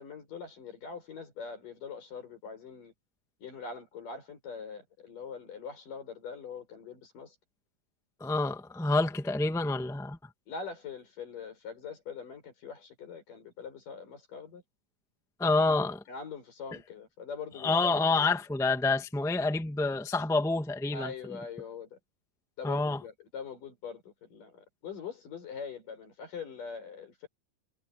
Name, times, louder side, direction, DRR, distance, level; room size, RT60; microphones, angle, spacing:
voice 1, 0.0-2.9 3.4-7.4 10.5-14.6 15.4-18.0 20.9-22.0 22.6-27.3, left 5 dB, 65° left, 7.5 m, -43 dB
voice 2, 8.2-10.2 15.4-16.0 17.6-21.1 22.6-23.0, left 3 dB, ahead, 1.8 m, -28 dB
omnidirectional pair, 4.0 m